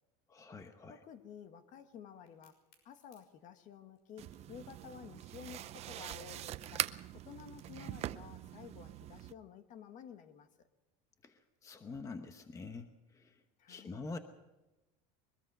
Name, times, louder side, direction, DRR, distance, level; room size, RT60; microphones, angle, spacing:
voice 1, 0.3-1.0 11.2-13.4 13.7-14.2, left 3 dB, 15° left, 8 dB, 1.0 m, -46 dB
voice 2, 0.9-2.5 2.8-6.9 7.2-10.7 13.6-14.0, left 8 dB, 45° left, 9 dB, 1.5 m, -52 dB
Crack, 2.3-7.9, left 5 dB, 85° left, 6.2 m, -72 dB
sound 1, 4.2-9.3, right 13 dB, 35° right, 0.6 m, -42 dB
22.5 x 21.5 x 5.5 m, 1.1 s
cardioid pair, 150°, 18 cm